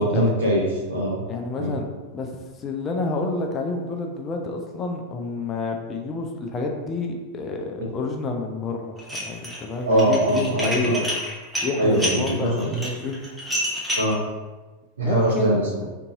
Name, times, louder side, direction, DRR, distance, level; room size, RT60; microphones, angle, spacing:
voice 1, 0.0-1.2 1.6-1.8 9.8-11.0 11.8-12.8 13.9-14.2 15.0-15.8, equal, 65° right, -4 dB, 0.9 m, -22 dB
voice 2, 1.3-1.9 2.1-9.0 9.3-11.1 11.6-13.2 15.0-15.6, left 3 dB, 25° left, 2 dB, 0.3 m, -29 dB
Dishes pots and pans, 9.0-9.6 9.9-14.2, equal, 5° right, 0.7 m, -28 dB
2.6 x 2.5 x 2.7 m, 1.2 s
figure-of-eight pair, 90°, 0 cm